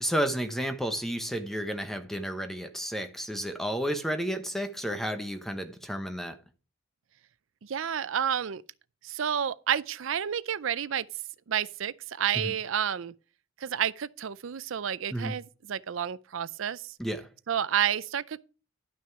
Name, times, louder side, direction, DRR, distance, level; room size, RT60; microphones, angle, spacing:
voice 1, 0.0-6.4 12.3-12.5 15.1-15.3 17.0-17.3, equal, ahead, 1.0 m, -32 dB
voice 2, 7.6-8.6 9.0-11.1 11.5-13.1 13.6-15.4 15.7-16.9 17.5-18.4, right 9 dB, 75° right, 0.5 m, -30 dB
11.5 x 6.1 x 4.7 m
head